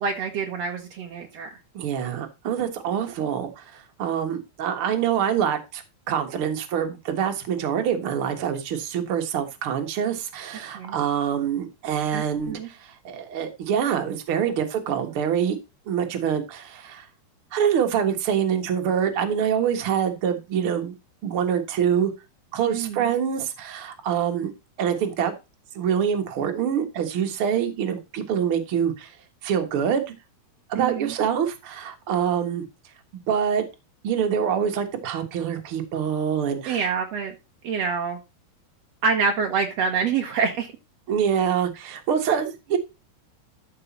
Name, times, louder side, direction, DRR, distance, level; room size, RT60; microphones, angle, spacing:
voice 1, 0.0-1.5 10.7-11.0 12.1-12.7 22.7-23.1 30.7-31.1 36.7-37.3 37.6-38.2 39.0-40.7, right 5 dB, 80° right, 2 dB, 1.4 m, -26 dB
voice 2, 1.7-15.6 15.9-17.1 17.5-20.9 21.2-22.1 22.5-24.5 24.8-25.3 25.7-29.1 29.4-30.0 30.7-32.6 33.3-33.7 34.0-36.9 41.1-42.8, right 8 dB, 55° right, 6 dB, 1.5 m, -25 dB
13.5 x 5.1 x 4.1 m, 0.26 s
omnidirectional pair, 4.6 m